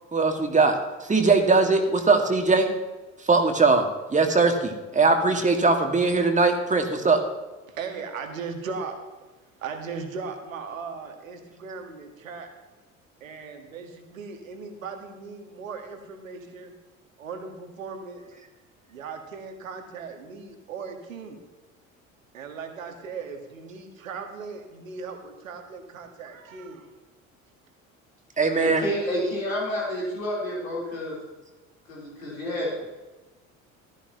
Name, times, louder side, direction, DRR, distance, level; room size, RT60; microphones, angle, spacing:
voice 1, 0.1-0.8 1.0-2.7 3.2-7.2 28.4-28.9, right 3 dB, 20° right, 4 dB, 2.0 m, -21 dB
voice 2, 7.7-9.0 9.6-12.5 13.2-16.7 17.2-18.2 18.9-21.4 22.3-26.9, right 5 dB, 75° right, 6 dB, 1.6 m, -38 dB
voice 3, 28.6-31.2 31.9-32.9, equal, 80° left, -5 dB, 3.8 m, -29 dB
15.0 x 13.0 x 3.0 m, 1.2 s
figure-of-eight pair, 60°, 40 cm